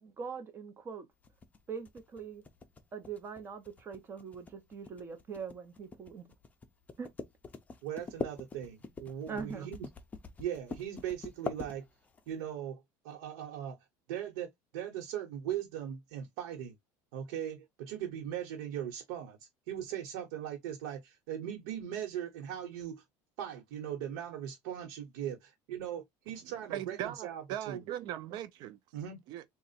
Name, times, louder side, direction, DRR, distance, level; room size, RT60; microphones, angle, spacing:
voice 1, 0.0-1.1 1.7-2.4 2.9-6.2 7.0-7.1 9.3-9.7, right 6 dB, 25° right, 1.0 m, -42 dB
sound 1, 1.2-12.3, left 4 dB, 15° left, 0.6 m, -43 dB
voice 2, 7.8-9.9 10.4-11.8 12.3-12.8 13.0-13.8 14.1-14.5 14.7-16.7 17.1-19.4 19.7-23.0 23.4-27.8 28.9-29.2, right 10 dB, 85° right, 1.2 m, -39 dB
voice 3, 26.7-28.8 29.3-29.4, right 12 dB, 50° right, 0.5 m, -39 dB
3.8 x 2.4 x 4.2 m
cardioid pair, 155°, 9 cm